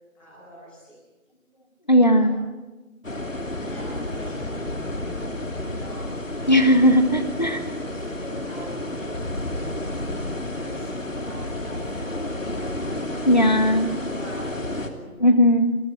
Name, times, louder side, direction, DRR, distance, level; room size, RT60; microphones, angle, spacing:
voice 1, 0.2-1.0 1.4-1.5 2.1-2.3 3.7-6.5 7.0-7.5 7.8-9.2 9.7-10.0 10.5-12.8 13.3-13.7 14.2-15.1, equal, 5° left, -12 dB, 6.5 m, -44 dB
voice 2, 1.9-2.4 6.5-7.6 13.2-13.9 15.2-15.8, equal, 30° left, 9 dB, 1.4 m, -17 dB
sound 1, 3.0-14.9, left 1 dB, 60° left, 3.0 m, -31 dB
29.0 x 19.5 x 7.7 m, 1.2 s
figure-of-eight pair, 170°, 42 cm